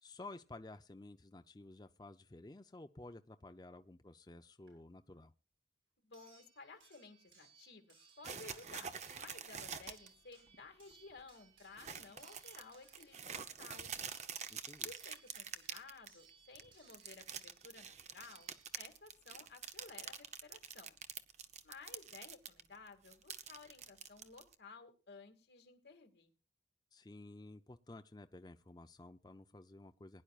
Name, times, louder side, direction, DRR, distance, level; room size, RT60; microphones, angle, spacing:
voice 1, 0.0-5.3 14.5-14.9 26.9-30.2, left 2 dB, 20° left, 0.5 m, -53 dB
sound 1, 4.7-4.8 6.1-19.1 20.4-20.5 20.8-20.9, right 5 dB, 85° right, 6.8 m, -66 dB
voice 2, 6.0-8.9 9.2-13.9 14.8-18.5 18.8-21.0 21.6-26.3, left 4 dB, 70° left, 2.1 m, -56 dB
sound 2, 8.2-10.1 10.5-10.6 10.9-11.2 11.8-16.3 16.6-22.6 22.9-24.5, right 7 dB, 40° right, 0.8 m, -46 dB
21.0 x 10.5 x 2.4 m
head